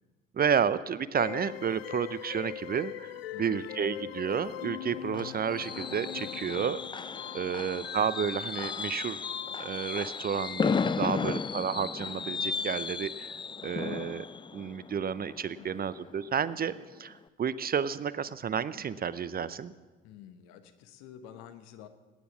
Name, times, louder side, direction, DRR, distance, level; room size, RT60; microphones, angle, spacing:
voice 1, 0.3-3.1 3.4-7.0 7.3-9.2 9.6-13.3 13.6-14.3 14.5-16.7 17.0-19.7, right 7 dB, 30° right, 17 dB, 0.6 m, -31 dB
sound 1, 1.2-11.3, left 12 dB, 85° left, 0.6 m, -42 dB
voice 2, 3.3-3.6 7.5-7.9 15.6-15.8 20.0-21.9, left 10 dB, 65° left, 9 dB, 1.3 m, -50 dB
Fireworks, 4.5-16.2 16.6-16.8 17.1-17.2, left 5 dB, 15° left, 0.4 m, -35 dB
19.0 x 9.5 x 7.3 m, 1.3 s
figure-of-eight pair, 55°, 29 cm